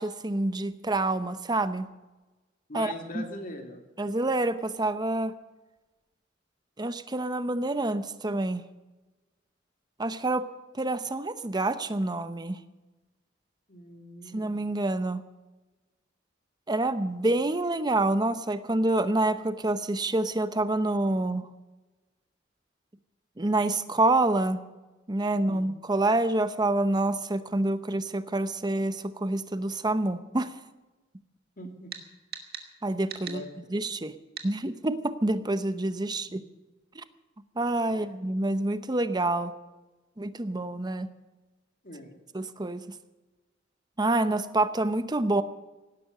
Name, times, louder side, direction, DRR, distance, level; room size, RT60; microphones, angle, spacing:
voice 1, 0.0-1.9 2.7-3.2 4.0-5.4 6.8-8.6 10.0-10.5 10.7-12.6 14.3-15.2 16.7-21.5 23.4-24.6 25.1-30.5 32.8-33.4 33.7-34.1 34.4-36.4 37.0-37.1 37.6-39.5 40.2-41.1 42.3-42.8 44.0-45.4, right 2 dB, 20° right, 12 dB, 0.8 m, -27 dB
voice 2, 2.7-3.8 13.7-14.5 25.3-25.6 31.6-31.9 33.2-33.9 36.0-36.1 37.9-38.1 41.8-42.1, left 1 dB, 45° left, 4 dB, 2.4 m, -42 dB
sound 1, 31.9-32.0 32.3-32.7 33.1-33.4 34.4-34.5, right 7 dB, 55° right, 1.9 m, -39 dB
17.0 x 12.0 x 6.6 m, 1.2 s
head